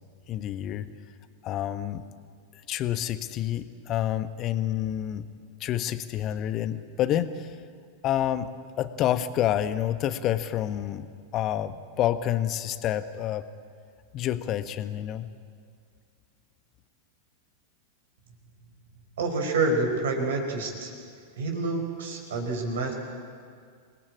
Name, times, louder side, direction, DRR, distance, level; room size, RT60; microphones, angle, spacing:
voice 1, 0.3-0.9 1.4-2.0 2.5-5.3 5.6-7.6 8.0-8.5 8.8-13.5 14.1-15.3, left 11 dB, 35° left, 11 dB, 1.3 m, -28 dB
voice 2, 19.2-20.9 21.4-22.9, right 3 dB, 60° right, 2 dB, 4.7 m, -28 dB
28.0 x 20.0 x 8.7 m, 2.1 s
figure-of-eight pair, 90°, 0 cm